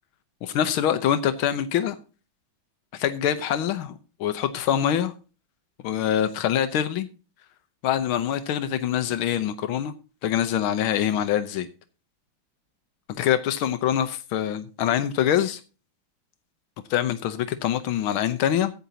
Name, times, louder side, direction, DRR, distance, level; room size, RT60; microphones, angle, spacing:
voice 1, 0.4-2.0 2.9-5.1 5.8-7.1 7.8-9.9 10.2-11.7 13.1-15.6 16.9-18.7, left 10 dB, 90° left, 1.7 m, -24 dB
15.5 x 9.3 x 2.8 m
omnidirectional pair, 2.3 m